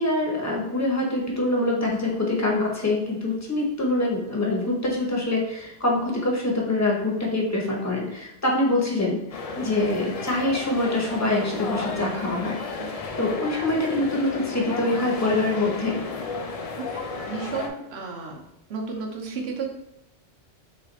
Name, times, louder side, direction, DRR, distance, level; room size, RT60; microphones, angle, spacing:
voice 1, 0.0-12.6 13.2-16.0, left 2 dB, 15° left, -2 dB, 0.8 m, -25 dB
sound 1, 9.3-17.7, left 4 dB, 65° left, 0.3 m, -33 dB
voice 2, 17.1-18.4 18.7-19.7, right 5 dB, 60° right, 0 dB, 1.1 m, -33 dB
3.3 x 3.3 x 4.0 m, 0.86 s
omnidirectional pair, 1.2 m